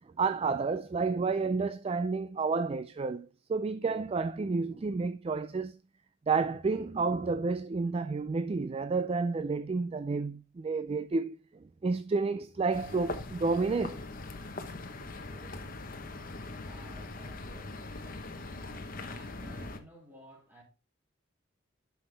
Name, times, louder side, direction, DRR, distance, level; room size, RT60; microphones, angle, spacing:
voice 1, 0.2-5.7 6.3-14.0, right 4 dB, 30° right, 0.3 m, -30 dB
sound 1, 12.7-19.8, left 2 dB, 45° left, 1.0 m, -41 dB
voice 2, 16.6-20.6, equal, 10° right, 2.6 m, -55 dB
9.9 x 5.8 x 3.3 m
head